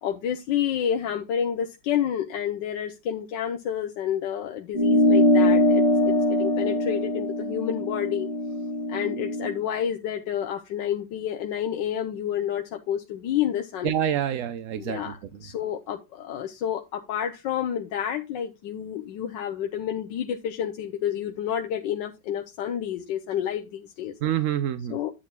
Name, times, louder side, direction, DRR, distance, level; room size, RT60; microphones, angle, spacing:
voice 1, 0.0-8.3 8.9-13.9 14.7-24.1 24.9-25.1, left 9 dB, 75° left, 1.5 m, -29 dB
sound 1, 4.7-9.5, left 1 dB, 15° right, 2.8 m, -22 dB
voice 2, 13.8-15.1 24.2-25.0, right 10 dB, 70° right, 0.8 m, -27 dB
11.0 x 8.5 x 2.3 m
omnidirectional pair, 2.0 m